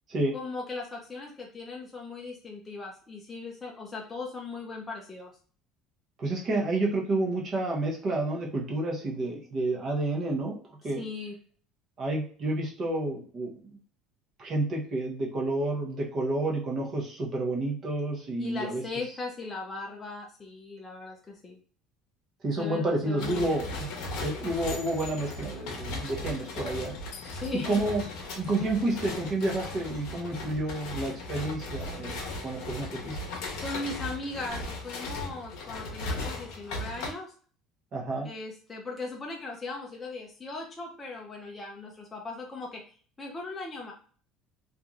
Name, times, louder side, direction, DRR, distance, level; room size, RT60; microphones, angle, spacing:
voice 1, 0.3-5.3 11.0-11.3 18.4-21.6 22.6-23.6 27.3-27.8 28.6-28.8 33.6-37.3 38.2-42.8 43.2-43.9, left 3 dB, 15° left, -1 dB, 0.4 m, -38 dB
voice 2, 6.2-10.6 10.8-11.0 12.0-13.8 14.4-18.8 22.4-23.9 24.2-26.9 27.6-28.0 28.4-33.2 37.9-38.3, right 2 dB, 30° right, -1 dB, 0.7 m, -30 dB
sound 1, 23.2-37.1, left 2 dB, 60° left, 0.8 m, -37 dB
2.9 x 2.4 x 2.4 m, 0.43 s
cardioid pair, 175°, 0 cm